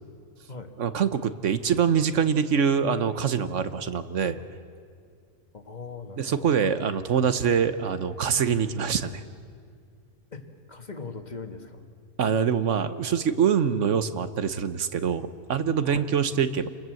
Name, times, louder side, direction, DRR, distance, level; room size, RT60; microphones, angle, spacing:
voice 1, 0.8-4.4 6.2-9.2 12.2-16.7, right 7 dB, 65° right, 11 dB, 1.3 m, -24 dB
voice 2, 5.5-6.5 7.4-7.6 10.3-11.8 15.8-16.1, left 4 dB, 30° left, 6 dB, 1.7 m, -40 dB
28.5 x 21.5 x 7.8 m, 2.3 s
omnidirectional pair, 1.4 m